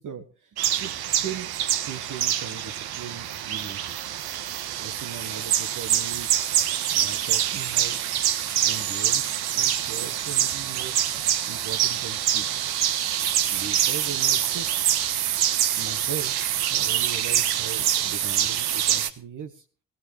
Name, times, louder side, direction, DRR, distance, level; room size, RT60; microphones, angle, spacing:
voice 1, 0.0-1.5 1.9-4.0 4.8-8.0 8.6-11.0 11.4-12.5 13.5-14.7 15.7-19.7, right 7 dB, 45° right, 8 dB, 1.3 m, -39 dB
sound 1, 0.6-19.1, right 11 dB, 65° right, 1.3 m, -25 dB
19.5 x 16.5 x 3.2 m, 0.38 s
hypercardioid pair, 45°, 41 cm